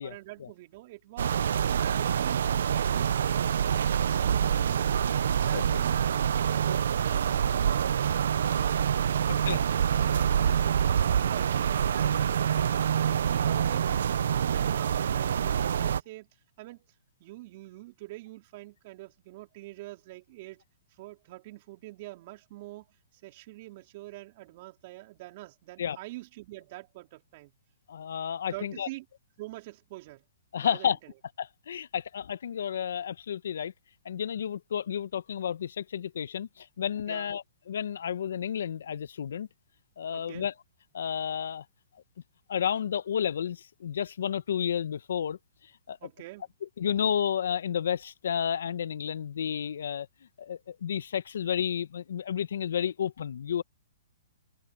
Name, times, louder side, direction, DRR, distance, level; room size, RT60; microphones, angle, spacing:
voice 1, 0.0-4.9 5.4-6.0 6.4-8.2 8.5-16.3 16.6-16.9 17.2-20.6 20.9-22.9 23.1-27.5 28.5-29.0 29.4-30.3 30.6-31.1 37.1-37.4 40.1-40.5 46.0-46.5, right 19 dB, 45° right, 3.5 m, -46 dB
sound 1, 1.2-16.0, right 8 dB, 70° right, 0.8 m, -26 dB
voice 2, 9.3-9.6 10.4-10.5 25.8-26.0 27.9-28.9 30.5-31.0 31.4-33.7 34.0-39.5 40.0-40.5 40.9-41.6 42.5-45.4 45.9-46.0 46.8-50.1 50.4-53.6, left 8 dB, 70° left, 1.1 m, -31 dB
open air
hypercardioid pair, 130°, 0 cm